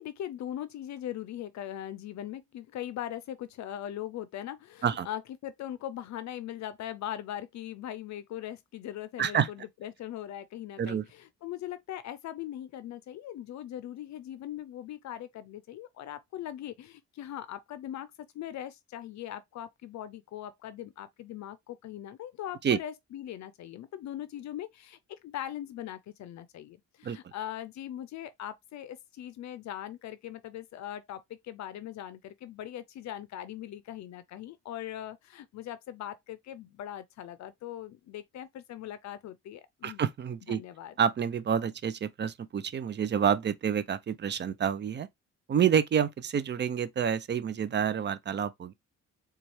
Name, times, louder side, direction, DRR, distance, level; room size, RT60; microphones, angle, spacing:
voice 1, 0.0-40.0 40.5-40.9, left 11 dB, 65° left, 0.5 m, -40 dB
voice 2, 9.2-9.5 10.8-11.0 22.6-22.8 27.0-27.2 39.8-40.6 41.0-45.1 45.5-48.7, right 8 dB, 35° right, 0.5 m, -28 dB
4.1 x 2.4 x 3.1 m
cardioid pair, 90°, 30 cm